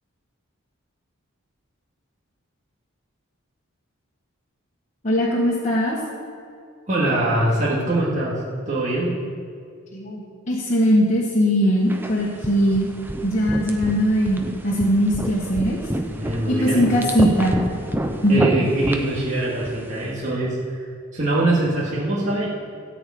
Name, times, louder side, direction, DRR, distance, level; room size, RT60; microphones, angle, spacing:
voice 1, 5.0-6.0 9.9-12.9 13.2-15.8 16.5-17.6 18.2-18.5, equal, 35° left, -6 dB, 1.6 m, -20 dB
voice 2, 6.9-9.2 16.2-16.8 18.3-20.6 21.1-22.5, right 2 dB, 35° right, -7 dB, 2.0 m, -23 dB
sound 1, 11.9-20.1, right 1 dB, 10° right, 0.6 m, -28 dB
13.5 x 5.1 x 8.6 m, 2.4 s
head